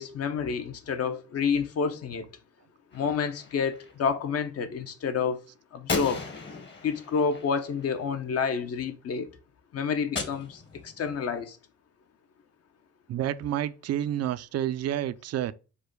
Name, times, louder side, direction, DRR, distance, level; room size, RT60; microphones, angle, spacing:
voice 1, 0.0-2.2 2.9-5.4 5.7-6.2 6.8-9.3 9.7-11.6, left 6 dB, 55° left, 0.8 m, -29 dB
Gunshot gunfire, 2.9-3.9 5.9-8.3 10.2-11.1, left 4 dB, 35° left, 1.1 m, -37 dB
voice 2, 13.1-15.5, right 11 dB, 55° right, 0.4 m, -29 dB
5.0 x 2.2 x 4.5 m
cardioid pair, 90°, 30 cm